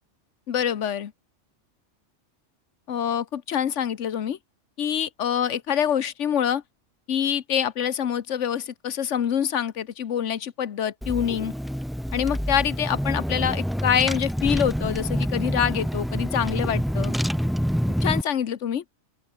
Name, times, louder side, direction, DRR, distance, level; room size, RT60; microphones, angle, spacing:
voice 1, 0.5-1.1 2.9-4.4 4.8-6.6 7.1-11.5 12.1-17.1 18.0-18.8, left 9 dB, 80° left, 1.3 m, -25 dB
Car / Engine, 11.0-18.2, equal, ahead, 0.6 m, -27 dB
open air
omnidirectional pair, 1.2 m